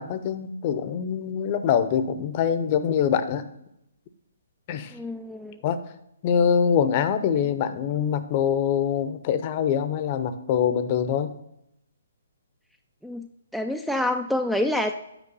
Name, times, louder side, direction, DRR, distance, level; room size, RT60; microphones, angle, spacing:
voice 1, 0.0-3.5 4.7-4.9 5.6-5.8 6.2-11.4, left 8 dB, 35° left, 11 dB, 0.7 m, -24 dB
voice 2, 4.9-5.6 13.0-13.3 13.5-15.0, left 1 dB, ahead, 6 dB, 0.3 m, -27 dB
9.0 x 5.0 x 5.4 m, 0.81 s
figure-of-eight pair, 130°, 0 cm